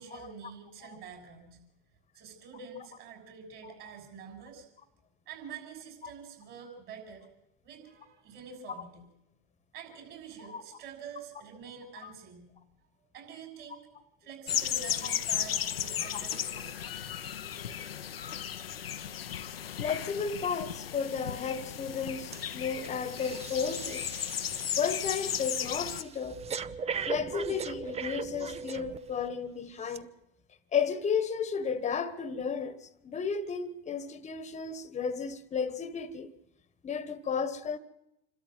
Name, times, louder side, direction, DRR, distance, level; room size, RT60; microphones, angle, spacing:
voice 1, 0.0-1.6 2.1-4.7 5.3-7.3 7.6-9.1 9.7-12.5 13.0-13.8 14.2-16.8, right 6 dB, 45° right, 6.5 m, -47 dB
sound 1, 14.5-26.0, left 9 dB, 90° left, 0.9 m, -35 dB
voice 2, 19.8-24.1 24.8-26.4 27.1-30.1 30.7-36.3 36.8-37.8, left 6 dB, 25° left, 1.3 m, -33 dB
Breathing, 22.3-22.5 22.8-29.3 29.8-30.0, right 6 dB, 20° right, 0.7 m, -39 dB
26.5 x 13.0 x 7.6 m
hypercardioid pair, 90°, 29 cm